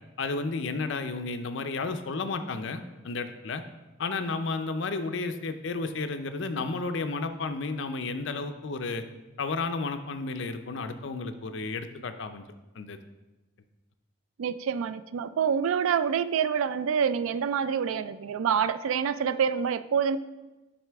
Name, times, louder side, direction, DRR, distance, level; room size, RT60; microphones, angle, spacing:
voice 1, 0.2-3.6 4.0-9.0 9.4-12.4 12.8-13.0, left 3 dB, 60° left, 9 dB, 0.5 m, -32 dB
voice 2, 14.4-20.2, right 7 dB, 80° right, 14 dB, 0.3 m, -27 dB
7.7 x 5.7 x 3.4 m, 1.1 s
head